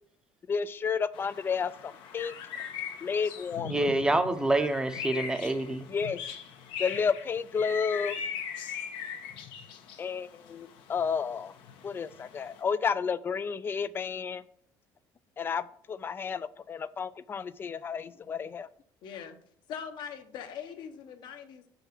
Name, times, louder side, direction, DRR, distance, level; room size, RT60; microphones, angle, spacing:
voice 1, 0.5-1.7 2.1-2.3 3.0-3.9 5.9-6.2 6.8-8.2 10.0-11.5 11.8-14.4 15.4-15.6 15.9-18.7, left 6 dB, 25° left, 16 dB, 0.4 m, -31 dB
sound 1, 1.1-12.6, left 7 dB, 80° left, 1.4 m, -40 dB
voice 2, 3.6-5.9, right 2 dB, 10° right, 9 dB, 0.7 m, -27 dB
voice 3, 19.0-19.4 19.7-21.7, left 7 dB, 60° left, 7 dB, 1.3 m, -41 dB
6.9 x 5.7 x 5.9 m, 0.62 s
cardioid pair, 160°, 8 cm